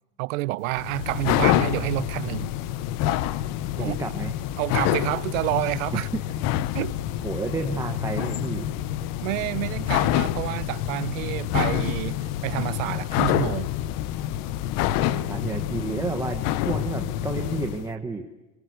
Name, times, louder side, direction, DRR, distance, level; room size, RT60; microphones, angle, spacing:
voice 1, 0.2-2.6 3.8-3.9 4.6-6.1 6.7-7.0 9.2-13.7, right 21 dB, 90° right, 0.8 m, -28 dB
sound 1, 0.7-17.9, left 13 dB, 40° left, 0.8 m, -27 dB
voice 2, 3.8-4.4 5.9-6.2 7.2-8.7 15.0-18.3, right 4 dB, 10° right, 1.1 m, -31 dB
23.5 x 23.0 x 8.0 m
cardioid pair, 170°, 38 cm